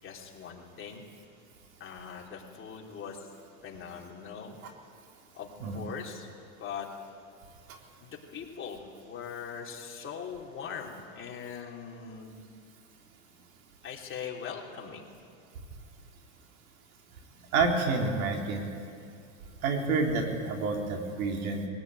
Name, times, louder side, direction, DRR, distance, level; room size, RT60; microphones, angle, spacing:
voice 1, 0.0-1.0 1.8-3.3 3.6-4.6 5.3-6.3 6.6-6.9 8.0-12.4 13.8-15.0, left 7 dB, 30° left, -1 dB, 3.2 m, -41 dB
voice 2, 17.5-18.7 19.6-21.7, right 3 dB, 90° right, 2 dB, 3.6 m, -28 dB
21.0 x 16.0 x 9.1 m, 2.4 s
supercardioid pair, 130°, 41 cm